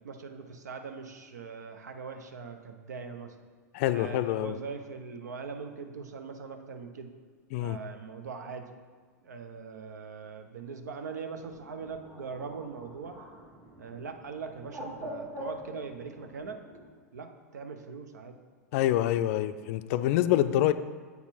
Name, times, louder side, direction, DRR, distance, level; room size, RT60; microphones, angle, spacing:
voice 1, 0.0-3.4 3.9-7.1 7.6-8.7 9.2-13.2 13.8-16.6 17.1-18.4, right 5 dB, 75° right, 6 dB, 0.7 m, -41 dB
voice 2, 3.7-4.5 7.5-7.8 18.7-20.7, left 13 dB, 55° left, 12 dB, 0.4 m, -26 dB
Bird, 11.3-16.9, equal, 30° right, 1.7 m, -45 dB
8.2 x 4.2 x 4.3 m, 1.5 s
figure-of-eight pair, 90°, 9 cm